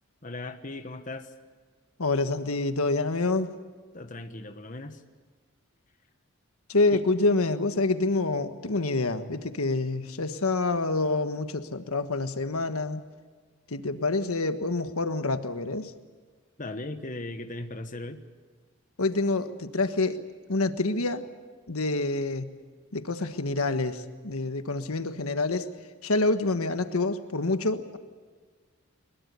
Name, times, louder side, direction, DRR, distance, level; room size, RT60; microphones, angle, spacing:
voice 1, 0.2-1.3 3.9-5.0 6.9-7.0 16.6-18.2, left 2 dB, 35° left, 8 dB, 1.3 m, -38 dB
voice 2, 2.0-3.5 6.7-13.0 13.7-15.9 19.0-20.2 20.5-21.3 21.7-22.5 22.9-25.6 26.0-28.0, left 2 dB, 85° left, 9 dB, 1.4 m, -27 dB
22.5 x 21.5 x 8.3 m, 1.4 s
head